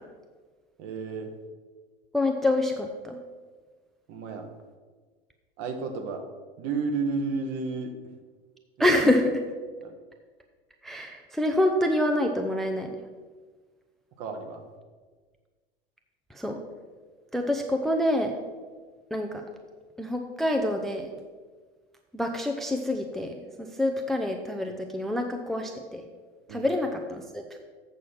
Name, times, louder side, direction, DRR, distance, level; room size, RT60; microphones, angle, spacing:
voice 1, 0.8-1.3 4.1-4.4 5.6-6.2 6.6-8.0 9.8-10.0 14.2-14.6 26.5-26.6, right 4 dB, 45° right, 5 dB, 1.3 m, -31 dB
voice 2, 2.1-3.2 8.8-9.4 10.8-13.0 16.3-16.6 17.3-18.3 19.1-19.4 20.0-21.1 22.1-23.3 23.7-26.0 26.5-27.6, left 1 dB, ahead, 4 dB, 0.5 m, -26 dB
8.1 x 6.2 x 5.8 m, 1.4 s
figure-of-eight pair, 85°, 29 cm